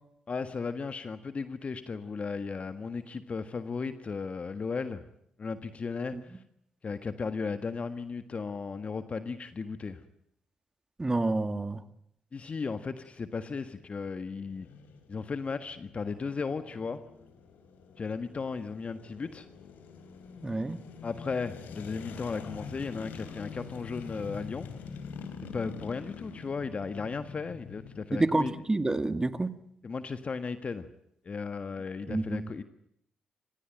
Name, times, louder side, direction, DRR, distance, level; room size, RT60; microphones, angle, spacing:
voice 1, 0.3-5.0 5.4-6.4 6.8-10.0 12.3-14.7 15.1-17.0 18.0-19.5 21.0-24.7 25.5-28.5 29.8-30.9 31.2-32.6, left 4 dB, 45° left, 10 dB, 1.6 m, -35 dB
voice 2, 11.0-11.8 20.4-20.8 28.1-29.6 32.1-32.4, right 2 dB, 20° right, 11 dB, 2.0 m, -28 dB
sound 1, 12.9-28.1, left 5 dB, 85° left, 3.7 m, -45 dB
27.5 x 16.5 x 9.1 m, 0.75 s
cardioid pair, 70°, 3 cm